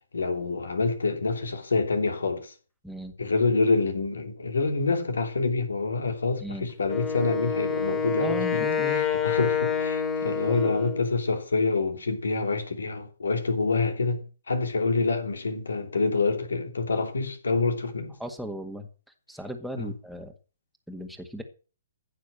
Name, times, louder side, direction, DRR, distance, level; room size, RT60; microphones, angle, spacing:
voice 1, 0.1-2.5 3.2-8.6 8.9-18.1 19.8-19.9, left 3 dB, 75° left, 3.0 m, -27 dB
Wind instrument woodwind instrument, 6.9-11.1, left 6 dB, 20° left, 3.2 m, -27 dB
voice 2, 8.2-9.0 10.5-10.7 18.2-18.9 19.3-20.3 20.9-21.4, equal, ahead, 1.9 m, -36 dB
15.0 x 6.3 x 7.6 m
figure-of-eight pair, 130°, 0 cm